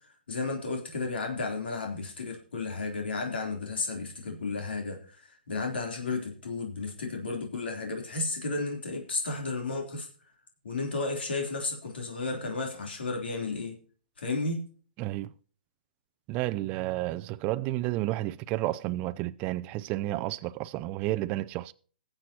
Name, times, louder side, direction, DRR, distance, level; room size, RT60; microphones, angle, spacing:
voice 1, 0.3-10.1 10.6-13.8 14.2-14.6, left 3 dB, 80° left, 3.3 m, -33 dB
voice 2, 15.0-15.3 16.3-21.7, right 16 dB, 25° right, 0.5 m, -31 dB
21.5 x 7.7 x 2.9 m
hypercardioid pair, 145°, 5 cm